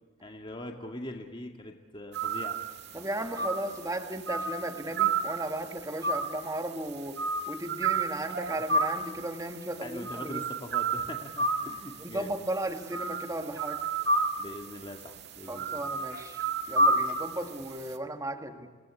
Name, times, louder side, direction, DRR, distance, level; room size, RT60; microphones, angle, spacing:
voice 1, 0.2-2.6 9.7-12.3 14.4-15.8 16.9-17.0, left 1 dB, 25° left, 3 dB, 2.1 m, -42 dB
sound 1, 2.1-17.9, right 3 dB, 55° right, 2.0 m, -30 dB
voice 2, 2.9-10.4 12.0-13.8 15.5-18.7, right 1 dB, 15° right, 5 dB, 2.0 m, -35 dB
30.0 x 19.0 x 8.4 m, 1.5 s
head